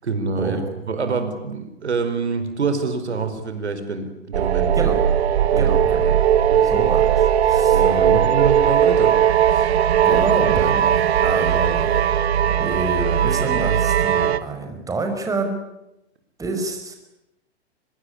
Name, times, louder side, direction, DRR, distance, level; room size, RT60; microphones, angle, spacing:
voice 1, 0.0-4.9 5.5-6.1 6.5-6.7 7.7-9.8, right 4 dB, 90° right, 9 dB, 4.9 m, -26 dB
sound 1, 4.3-14.4, right 9 dB, 70° right, 1.8 m, -18 dB
voice 2, 5.6-6.1 6.6-7.9 10.0-15.6 16.4-16.9, right 3 dB, 10° right, 4 dB, 5.5 m, -28 dB
24.5 x 22.0 x 10.0 m, 0.87 s
hypercardioid pair, 125°, 33 cm